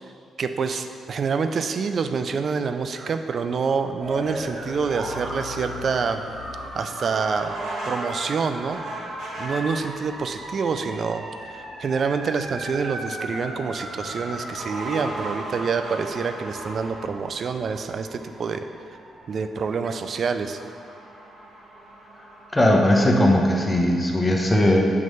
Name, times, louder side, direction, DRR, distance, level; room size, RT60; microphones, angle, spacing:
voice 1, 0.4-6.2 6.7-7.5 7.9-8.8 9.4-11.2 11.5-18.7 19.3-20.6, right 5 dB, 55° right, 8 dB, 0.4 m, -27 dB
sound 1, 4.0-23.1, right 1 dB, 80° right, 1.2 m, -36 dB
voice 2, 22.5-24.9, left 1 dB, 20° left, 0 dB, 0.9 m, -18 dB
5.9 x 3.1 x 5.3 m, 2.5 s
supercardioid pair, 60°, 0 cm